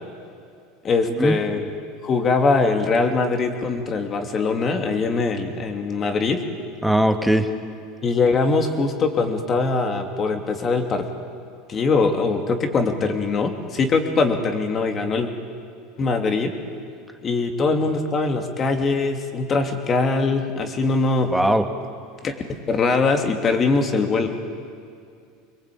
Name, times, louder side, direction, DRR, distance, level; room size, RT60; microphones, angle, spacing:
voice 1, 0.8-1.6 2.0-6.4 8.0-11.0 11.7-15.3 16.0-16.5 17.2-21.3 22.2-22.3 22.7-24.5, left 4 dB, 35° left, 5 dB, 3.1 m, -22 dB
voice 2, 6.8-7.5 21.3-21.7, right 1 dB, ahead, 5 dB, 2.0 m, -19 dB
25.0 x 21.5 x 8.8 m, 2.3 s
supercardioid pair, 110°, 0 cm